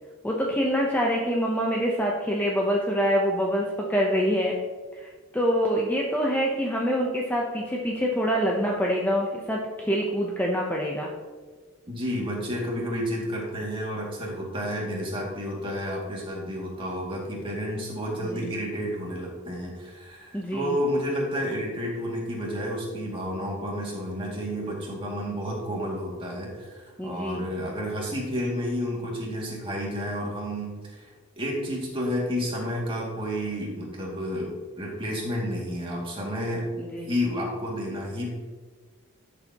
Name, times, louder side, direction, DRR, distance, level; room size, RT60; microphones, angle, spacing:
voice 1, 0.2-4.6 4.9-11.1 18.3-18.5 20.3-20.8 27.0-27.4 36.8-37.1, equal, 10° left, -2 dB, 0.7 m, -25 dB
voice 2, 11.9-31.1 31.4-36.7 37.0-38.3, equal, 25° right, -3 dB, 2.3 m, -31 dB
12.5 x 7.0 x 2.9 m, 1.4 s
head